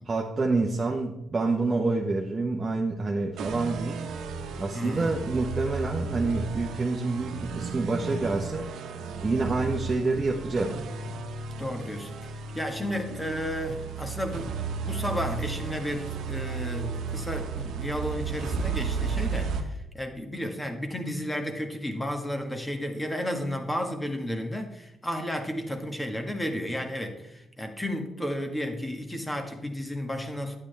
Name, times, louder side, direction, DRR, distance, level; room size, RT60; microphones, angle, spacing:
voice 1, 0.1-4.0 4.6-8.7 9.2-10.8, right 3 dB, 30° right, -1 dB, 1.0 m, -27 dB
sound 1, 3.4-19.6, right 5 dB, 75° right, 1.0 m, -34 dB
voice 2, 4.7-5.1 11.6-14.5 14.8-30.6, equal, 10° left, 5 dB, 1.6 m, -33 dB
10.5 x 8.6 x 3.4 m, 0.88 s
cardioid pair, 90°, 0 cm